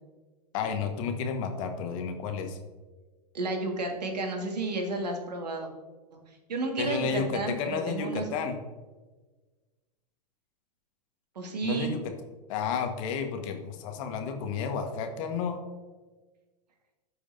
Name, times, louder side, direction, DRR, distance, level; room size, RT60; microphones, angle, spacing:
voice 1, 0.5-2.6 6.8-8.6 11.6-12.0 12.5-15.6, left 6 dB, 55° left, 5 dB, 1.3 m, -31 dB
voice 2, 3.3-5.7 6.1-6.2 6.5-8.4 11.4-11.9, right 3 dB, 85° right, 3 dB, 1.7 m, -32 dB
12.5 x 5.0 x 2.6 m, 1.3 s
hypercardioid pair, 110°, 21 cm